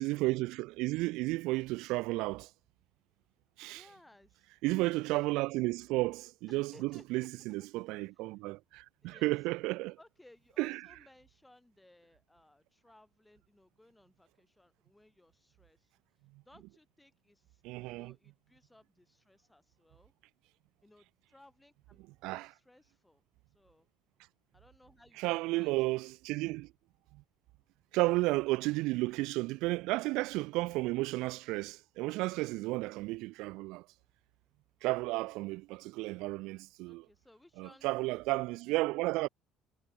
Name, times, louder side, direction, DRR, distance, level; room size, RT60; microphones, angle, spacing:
voice 1, 0.0-2.5 3.6-3.8 4.6-10.0 10.6-10.8 17.6-18.1 22.2-22.5 25.2-26.7 27.1-27.2 27.9-33.9 34.8-37.0 37.6-39.3, right 21 dB, 65° right, 0.3 m, -33 dB
voice 2, 3.7-4.5 6.5-7.3 8.1-8.3 9.0-9.4 10.0-20.1 20.8-23.9 24.5-25.2 25.5-25.9 36.8-37.9 38.7-38.8, left 1 dB, 10° left, 7.9 m, -62 dB
figure-of-eight pair, 55°, 0 cm